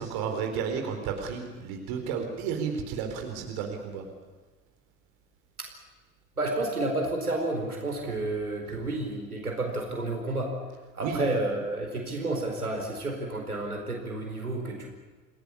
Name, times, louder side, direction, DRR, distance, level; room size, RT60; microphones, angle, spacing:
voice 1, 0.0-4.0 8.7-8.8 11.0-11.2, right 6 dB, 55° right, 4 dB, 4.3 m, -32 dB
voice 2, 6.4-10.5 10.9-14.9, right 2 dB, 85° right, 2 dB, 4.7 m, -30 dB
27.5 x 18.0 x 8.6 m, 1.4 s
figure-of-eight pair, 65°, 43 cm